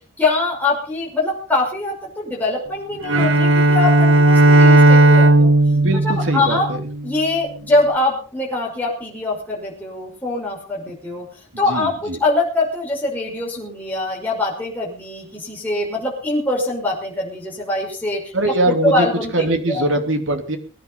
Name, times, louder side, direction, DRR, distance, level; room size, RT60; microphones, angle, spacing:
voice 1, 0.2-5.5 6.0-6.7 7.0-11.3 11.6-18.3 18.7-19.9, left 2 dB, 10° left, -3 dB, 5.6 m, -23 dB
Bowed string instrument, 3.0-7.3, right 2 dB, 85° right, 1.4 m, -14 dB
voice 2, 5.7-6.8 11.7-12.2 18.3-19.1 19.3-20.6, right 1 dB, 70° right, 6 dB, 3.0 m, -22 dB
22.0 x 10.5 x 5.4 m, 0.39 s
head